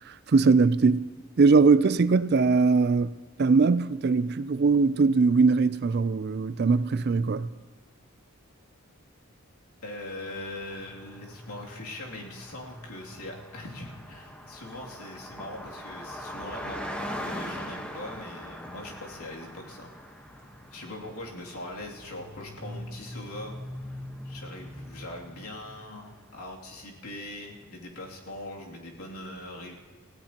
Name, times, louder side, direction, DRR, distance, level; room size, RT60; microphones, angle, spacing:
voice 1, 0.3-1.1 1.4-3.1 3.4-7.5, right 4 dB, 45° right, 0.4 m, -21 dB
voice 2, 9.8-19.9 20.3-20.4 20.7-23.6 23.8-24.0 24.2-29.7, left 1 dB, 80° left, 2.7 m, -41 dB
Car passing by, 10.3-26.3, equal, 5° left, 1.2 m, -41 dB
28.0 x 16.0 x 2.9 m
head